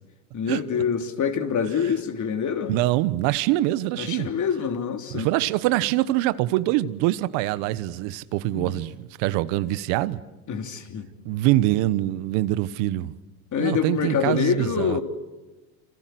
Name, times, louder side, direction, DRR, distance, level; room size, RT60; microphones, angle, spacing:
voice 1, 0.3-2.8 4.0-5.3 8.5-8.7 10.5-11.1 13.5-15.0, left 7 dB, 40° left, 3.3 m, -26 dB
voice 2, 2.7-4.3 5.1-10.2 11.2-13.1 13.6-15.0, right 16 dB, 65° right, 1.3 m, -24 dB
27.0 x 27.0 x 7.8 m
supercardioid pair, 95°, 47 cm